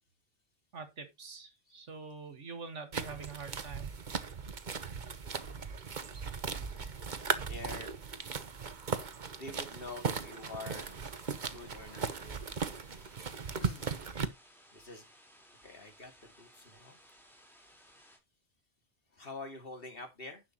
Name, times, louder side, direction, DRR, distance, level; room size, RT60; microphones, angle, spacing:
voice 1, 0.7-3.9, right 4 dB, 80° right, 2.1 m, -45 dB
sound 1, 2.9-14.3, right 5 dB, 45° right, 1.1 m, -38 dB
voice 2, 7.4-7.9 9.3-11.1 11.4-12.4 13.6-13.9 14.7-15.0 15.6-17.0 19.1-20.4, left 2 dB, 50° left, 2.6 m, -46 dB
sound 2, 9.5-18.2, equal, ahead, 4.1 m, -61 dB
11.0 x 7.6 x 3.0 m
omnidirectional pair, 1.2 m